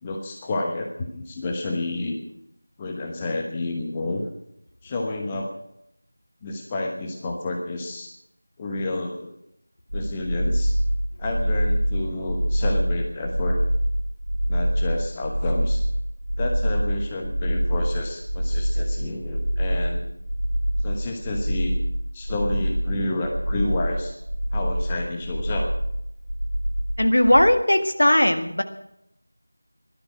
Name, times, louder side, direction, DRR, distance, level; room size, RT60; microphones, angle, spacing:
voice 1, 0.0-2.2 2.8-4.3 4.8-5.5 6.4-8.1 8.6-9.4 9.9-10.8 11.2-13.6 14.5-15.8 16.4-20.0 20.8-21.8 22.1-24.2 24.5-25.7, left 2 dB, 15° left, 2 dB, 1.1 m, -30 dB
sound 1, 9.9-27.5, equal, 90° right, 2.4 m, -25 dB
voice 2, 27.0-28.6, left 1 dB, 65° left, 7 dB, 1.7 m, -18 dB
17.0 x 12.5 x 6.1 m, 0.78 s
figure-of-eight pair, 170°, 0 cm